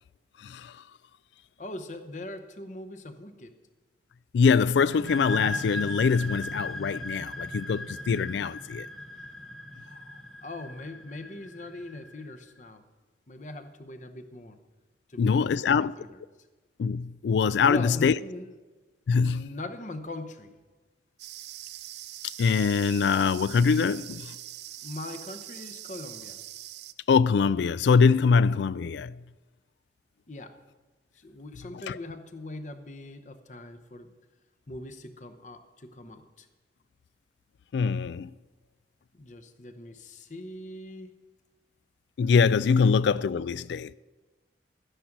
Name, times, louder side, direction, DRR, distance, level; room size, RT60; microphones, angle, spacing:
voice 1, 0.4-0.7 4.3-8.9 15.2-15.9 16.8-18.1 19.1-19.5 22.4-24.3 27.1-29.2 31.9-32.0 37.7-38.3 42.2-43.9, left 5 dB, 75° left, 0.3 m, -23 dB
voice 2, 1.6-3.5 10.4-12.9 13.3-14.6 15.1-16.2 17.6-18.6 19.2-20.6 24.8-26.4 30.3-30.6 31.1-34.1 34.7-36.5 39.1-41.2 42.8-43.0, left 2 dB, 40° left, 0.9 m, -41 dB
sound 1, 4.9-12.3, left 1 dB, ahead, 0.6 m, -37 dB
sound 2, 21.2-26.9, right 14 dB, 70° right, 0.5 m, -43 dB
12.5 x 10.0 x 6.0 m
head